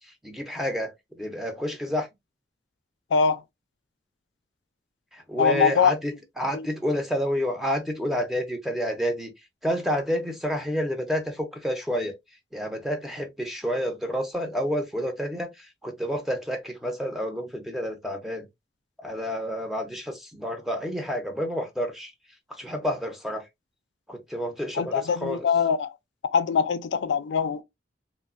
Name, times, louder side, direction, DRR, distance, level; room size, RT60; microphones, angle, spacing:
voice 1, 0.2-2.1 5.1-9.3 9.6-12.1 12.5-18.4 19.0-22.1 22.6-23.4 24.1-25.5, equal, ahead, 0.5 m, -29 dB
voice 2, 3.1-3.4 5.4-5.9 6.5-6.7 24.8-25.9 26.3-27.6, left 6 dB, 90° left, 0.4 m, -23 dB
3.1 x 2.0 x 2.4 m
head